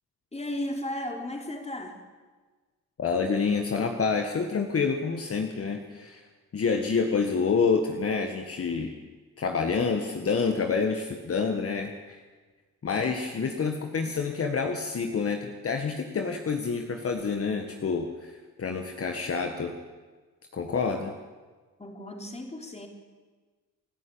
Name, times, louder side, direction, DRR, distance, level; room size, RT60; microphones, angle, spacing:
voice 1, 0.3-2.0 21.8-22.9, left 1 dB, 20° left, 3 dB, 3.8 m, -35 dB
voice 2, 3.0-6.2 6.5-8.9 9.4-12.2 12.8-19.7 20.5-21.1, left 5 dB, 50° left, 4 dB, 1.8 m, -28 dB
30.0 x 11.0 x 8.8 m, 1.4 s
cardioid pair, 80°, 31 cm